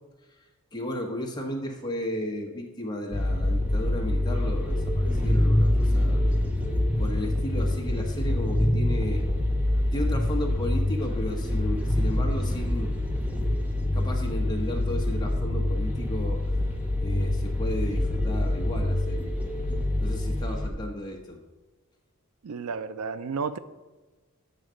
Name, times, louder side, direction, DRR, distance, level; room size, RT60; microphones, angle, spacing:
voice 1, 0.7-6.2 7.0-9.2 9.9-12.9 13.9-16.5 17.0-19.3 20.0-21.4, left 1 dB, 20° left, 1.2 m, -34 dB
sound 1, 3.1-20.7, left 1 dB, 5° right, 1.0 m, -25 dB
voice 2, 22.4-23.6, right 5 dB, 90° right, 0.4 m, -32 dB
8.8 x 4.0 x 6.3 m
head